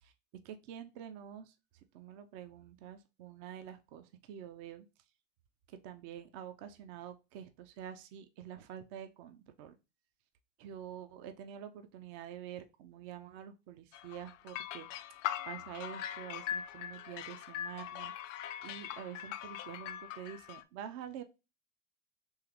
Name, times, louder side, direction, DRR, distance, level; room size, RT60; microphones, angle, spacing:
voice 1, 0.4-4.9 5.7-9.8 10.6-21.2, right 10 dB, 50° right, 9 dB, 0.6 m, -47 dB
sound 1, 13.9-20.6, left 10 dB, 70° left, 0.5 m, -41 dB
3.7 x 3.0 x 3.0 m, 0.28 s
hypercardioid pair, 85°, 38 cm